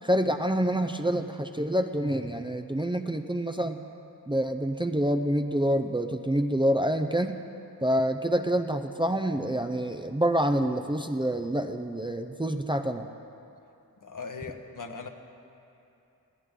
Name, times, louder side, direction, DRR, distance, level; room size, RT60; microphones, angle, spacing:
voice 1, 0.0-3.8 4.3-7.4 7.8-13.1, right 1 dB, 15° right, 6 dB, 0.6 m, -27 dB
voice 2, 14.0-15.1, left 5 dB, 55° left, 4 dB, 1.3 m, -39 dB
21.0 x 15.0 x 3.8 m, 2.7 s
cardioid pair, 55°, 37 cm